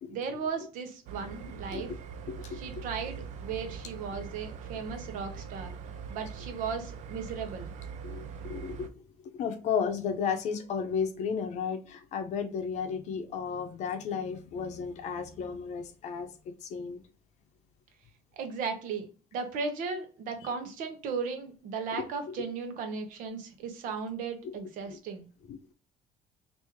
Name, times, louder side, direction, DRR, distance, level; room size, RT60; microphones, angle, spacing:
voice 1, 0.1-1.9 2.5-5.7 6.1-7.7 18.3-25.3, right 5 dB, 75° right, 0.8 m, -36 dB
sound 1, 1.1-8.9, right 6 dB, 60° right, 0.4 m, -42 dB
voice 2, 2.3-2.9 8.0-8.9 9.2-16.3 16.6-17.0 21.9-22.1 24.4-24.6 24.9-25.0 25.5-25.6, left 6 dB, 55° left, 0.6 m, -33 dB
3.0 x 2.6 x 3.4 m
cardioid pair, 155°, 14 cm